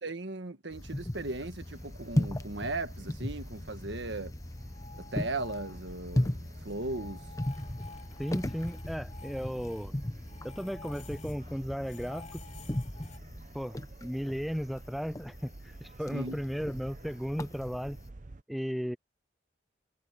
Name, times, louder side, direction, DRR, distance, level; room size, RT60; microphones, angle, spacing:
voice 1, 0.0-4.3 4.9-7.2 16.1-16.4, right 2 dB, 75° right, 1.8 m, -37 dB
sound 1, 0.7-18.1, left 1 dB, 20° left, 0.8 m, -37 dB
sound 2, 1.6-18.4, right 2 dB, 45° right, 0.8 m, -52 dB
sound 3, 4.6-6.2 6.4-11.5 11.8-13.2, left 5 dB, 40° left, 4.5 m, -52 dB
voice 2, 8.2-9.9 10.4-12.4 13.5-18.0 18.5-19.0, equal, ahead, 0.3 m, -35 dB
head